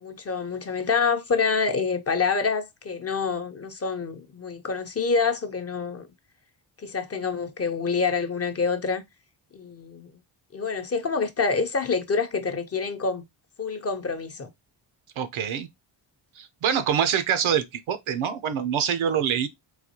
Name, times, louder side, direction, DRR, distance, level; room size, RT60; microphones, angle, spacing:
voice 1, 0.0-6.1 6.8-9.0 9.5-10.1 10.5-13.2 13.6-14.5, left 5 dB, 30° left, 0.5 m, -27 dB
voice 2, 15.2-15.7 16.4-19.5, right 8 dB, 75° right, 0.7 m, -25 dB
4.0 x 2.2 x 2.8 m
cardioid pair, 75°, 50 cm